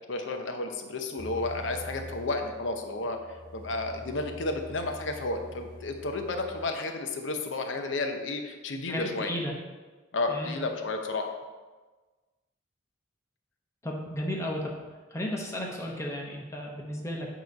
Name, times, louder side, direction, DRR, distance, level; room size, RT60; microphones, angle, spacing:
voice 1, 0.1-9.3 10.1-11.3, left 2 dB, 85° left, 5 dB, 0.8 m, -32 dB
sound 1, 1.2-6.7, equal, 55° right, 1.4 m, -45 dB
voice 2, 8.9-9.5 10.3-10.6 13.8-14.8 15.1-17.3, left 1 dB, 15° left, -1 dB, 0.9 m, -34 dB
8.2 x 3.1 x 5.3 m, 1.3 s
head